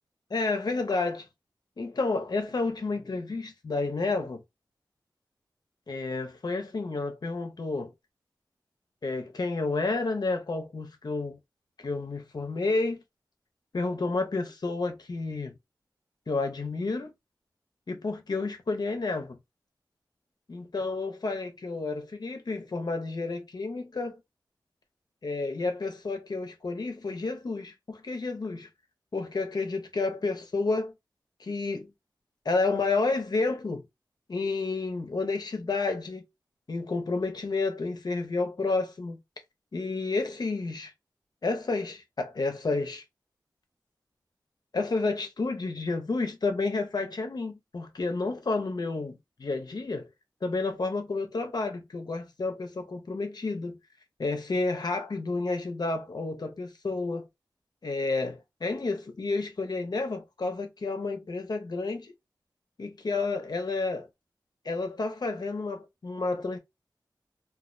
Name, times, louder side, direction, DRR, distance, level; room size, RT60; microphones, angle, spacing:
voice 1, 0.3-1.3 1.8-4.4 5.9-7.9 9.0-11.4 11.8-13.0 13.7-15.6 16.3-17.1 17.9-19.4 20.5-24.2 25.2-28.7 29.1-30.9 31.4-31.9 32.4-33.8 34.3-36.2 36.7-39.2 39.7-40.9 41.4-43.0 44.7-50.1 50.4-53.8 54.2-57.3 57.8-62.1 62.8-64.1 64.6-66.6, left 3 dB, 60° left, 0.7 m, -30 dB
2.3 x 2.0 x 2.6 m
cardioid pair, 45°, 8 cm